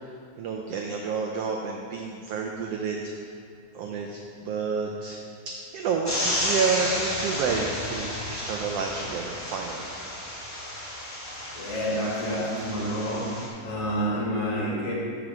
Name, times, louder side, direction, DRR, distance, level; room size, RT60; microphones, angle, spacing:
voice 1, 0.4-3.0 3.7-4.2 4.4-5.2 5.5-9.8, right 5 dB, 80° right, 1 dB, 1.4 m, -29 dB
Rain in Bytow, 6.0-13.5, left 1 dB, 15° left, 0.5 m, -32 dB
voice 2, 11.5-14.9, equal, 55° left, -4 dB, 2.1 m, -29 dB
7.4 x 5.0 x 6.1 m, 2.3 s
omnidirectional pair, 3.4 m